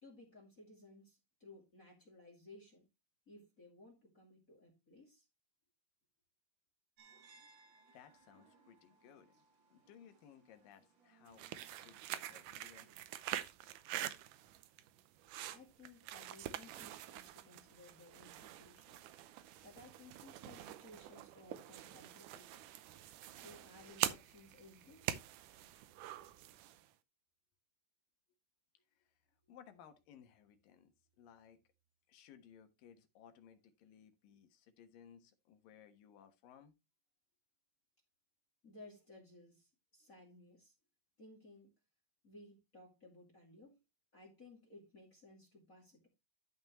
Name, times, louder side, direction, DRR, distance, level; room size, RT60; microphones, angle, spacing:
voice 1, 0.0-2.9 3.3-5.2 15.5-19.0 19.6-22.6 23.3-25.0 38.6-40.7 41.2-41.7 42.2-43.8 44.1-46.1, left 2 dB, 25° left, 2.4 m, -59 dB
sound 1, 7.0-13.0, right 4 dB, 45° right, 1.9 m, -67 dB
voice 2, 7.9-12.9 29.0-29.1 29.5-31.6 32.1-36.7, left 8 dB, 80° left, 2.9 m, -61 dB
sound 2, 11.3-26.9, right 13 dB, 75° right, 2.1 m, -45 dB
12.5 x 5.8 x 3.0 m
omnidirectional pair, 3.9 m